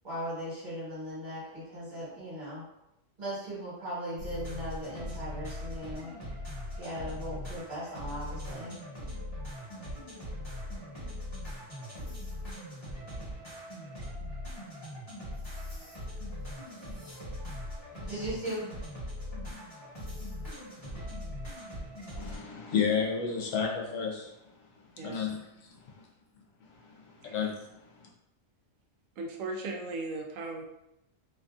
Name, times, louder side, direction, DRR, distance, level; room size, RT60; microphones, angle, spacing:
voice 1, 0.0-2.6 3.2-6.1 6.8-8.7 17.9-18.6, equal, 40° right, -9 dB, 1.4 m, -38 dB
sound 1, 4.2-22.4, left 1 dB, 25° left, 1.1 m, -40 dB
voice 2, 22.2-24.3 25.0-26.0 26.8-28.1, left 6 dB, 90° left, 0 dB, 1.0 m, -32 dB
voice 3, 29.2-30.6, right 2 dB, 85° right, 1 dB, 1.0 m, -37 dB
2.8 x 2.6 x 2.3 m, 0.85 s
omnidirectional pair, 1.3 m